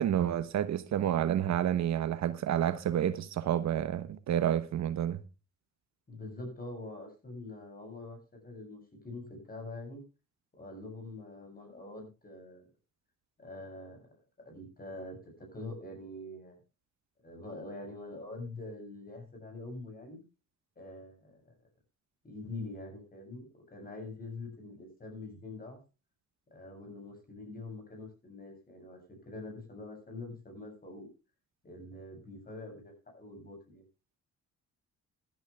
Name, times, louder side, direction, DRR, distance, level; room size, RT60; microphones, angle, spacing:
voice 1, 0.0-5.2, right 10 dB, 65° right, 1.0 m, -29 dB
voice 2, 6.1-8.2 8.4-10.0 10.6-12.6 13.4-14.0 14.4-16.6 17.2-20.2 20.8-21.4 22.2-25.8 26.5-31.1 31.6-33.8, left 2 dB, 30° left, 7.8 m, -45 dB
15.5 x 11.5 x 3.4 m
cardioid pair, 90°, 30 cm